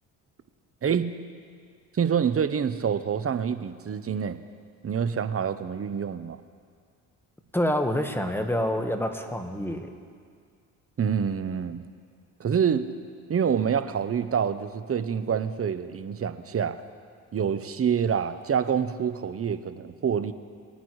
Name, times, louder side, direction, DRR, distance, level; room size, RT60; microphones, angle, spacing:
voice 1, 1.9-4.4 4.8-6.4 11.0-11.9 12.4-12.9 13.3-16.8 17.3-20.3, right 7 dB, 35° right, 11 dB, 0.8 m, -26 dB
voice 2, 7.5-9.9, left 1 dB, 5° left, 6 dB, 1.3 m, -27 dB
21.5 x 9.2 x 3.2 m, 2.1 s
supercardioid pair, 60°, 42 cm